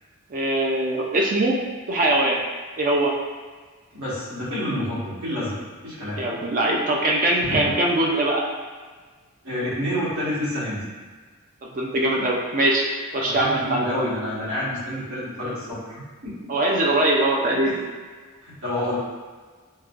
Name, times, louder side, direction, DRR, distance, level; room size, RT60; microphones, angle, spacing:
voice 1, 0.3-1.6 1.9-2.4 2.8-3.2 6.2-8.4 11.6-12.9 13.1-13.9 16.5-17.7, right 1 dB, 40° right, -1 dB, 0.4 m, -22 dB
voice 2, 3.9-5.6 5.8-6.2 7.4-7.7 9.4-10.8 13.1-16.3 17.6-17.8 18.4-19.0, left 1 dB, 75° right, -11 dB, 1.4 m, -28 dB
4.7 x 2.1 x 2.4 m, 1.5 s
head